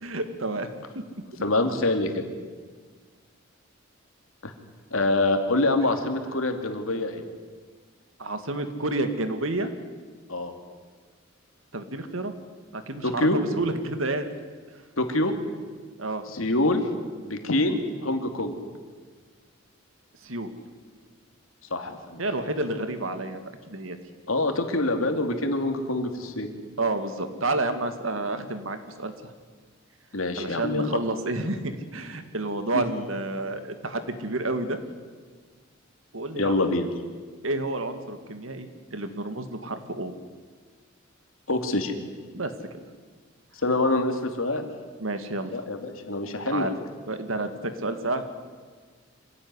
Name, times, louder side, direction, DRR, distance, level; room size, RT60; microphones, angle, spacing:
voice 1, 0.0-0.7 8.2-9.7 11.7-12.3 12.7-14.3 16.0-16.2 20.2-20.5 22.2-23.4 23.7-24.0 26.8-29.1 30.4-34.8 36.1-36.6 37.4-40.1 42.3-42.5 45.0-45.6 46.5-46.7 47.1-48.2, right 2 dB, 80° right, 8 dB, 2.2 m, -30 dB
voice 2, 1.4-2.3 4.4-4.5 4.9-7.2 10.3-10.5 13.0-13.4 15.0-15.3 16.3-16.9 17.2-18.6 21.7-22.2 24.3-26.5 30.1-30.9 32.7-32.8 36.4-36.9 41.5-41.9 43.6-44.7 45.5-46.7, left 2 dB, 85° left, 5 dB, 2.8 m, -25 dB
26.0 x 16.5 x 9.9 m, 1.5 s
head